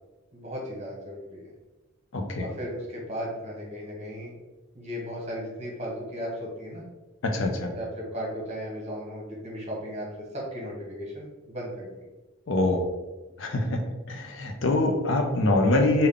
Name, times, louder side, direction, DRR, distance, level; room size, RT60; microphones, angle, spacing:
voice 1, 0.3-1.4 2.4-4.3 4.7-6.8 7.7-10.1 10.3-11.9, equal, 35° right, -4 dB, 1.0 m, -36 dB
voice 2, 2.1-2.5 7.2-7.7 12.5-12.8 13.4-13.8 14.1-16.1, left 2 dB, 65° left, 3 dB, 0.5 m, -24 dB
3.6 x 2.2 x 3.4 m, 1.1 s
head